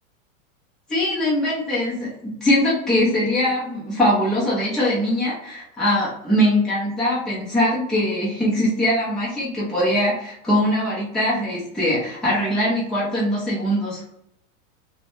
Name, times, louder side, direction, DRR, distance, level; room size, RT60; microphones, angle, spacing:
voice 1, 0.9-14.0, left 1 dB, ahead, -8 dB, 0.5 m, -22 dB
2.5 x 2.2 x 2.9 m, 0.76 s
supercardioid pair, 145°, 42 cm